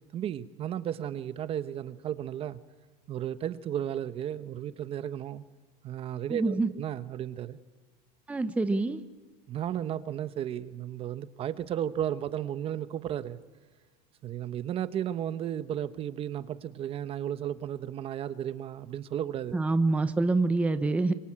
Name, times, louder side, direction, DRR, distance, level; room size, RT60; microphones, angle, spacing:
voice 1, 0.1-2.6 3.1-5.4 5.8-7.6 9.5-13.4 14.2-19.6, right 10 dB, 30° right, 0.9 m, -34 dB
voice 2, 6.3-6.7 8.3-9.0 19.5-21.1, right 3 dB, 5° right, 0.8 m, -26 dB
26.5 x 24.5 x 8.7 m
supercardioid pair, 160°, 20 cm